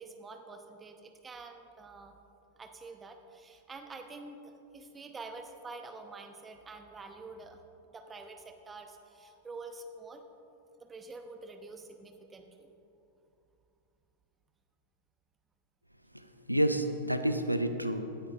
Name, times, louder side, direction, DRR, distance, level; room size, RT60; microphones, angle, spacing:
voice 1, 0.0-2.2 2.6-7.6 7.9-10.2 10.8-12.7, right 3 dB, 15° right, 5 dB, 0.9 m, -47 dB
voice 2, 16.1-18.2, right 1 dB, 90° right, 8 dB, 0.5 m, -30 dB
16.5 x 9.9 x 2.5 m, 2.7 s
figure-of-eight pair, 90°, 0 cm